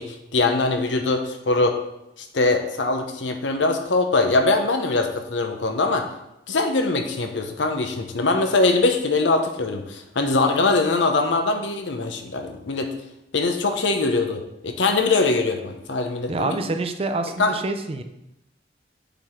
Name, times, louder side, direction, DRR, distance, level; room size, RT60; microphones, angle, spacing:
voice 1, 0.0-1.8 2.2-6.1 6.5-12.9 13.3-16.6 17.4-17.5, left 3 dB, 80° left, 5 dB, 0.8 m, -22 dB
voice 2, 16.3-18.0, right 2 dB, 30° right, 7 dB, 0.5 m, -26 dB
6.9 x 4.0 x 4.4 m, 0.85 s
head